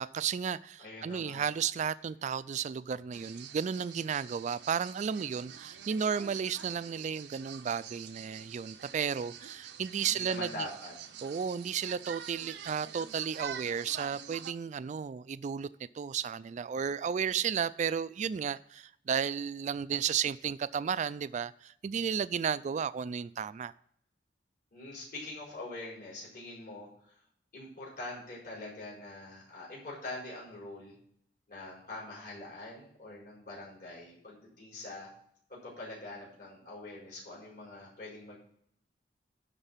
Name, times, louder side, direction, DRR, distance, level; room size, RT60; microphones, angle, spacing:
voice 1, 0.0-10.7 11.2-15.7 15.9-23.7, right 7 dB, 45° right, 0.3 m, -33 dB
voice 2, 0.8-1.5 10.0-10.9 16.7-16.8 24.7-27.1 27.5-30.9 31.5-35.1 35.5-38.4, left 2 dB, 55° left, 4.5 m, -44 dB
sound 1, 3.1-14.5, right 8 dB, 80° right, 0.7 m, -46 dB
12.0 x 4.1 x 7.2 m
head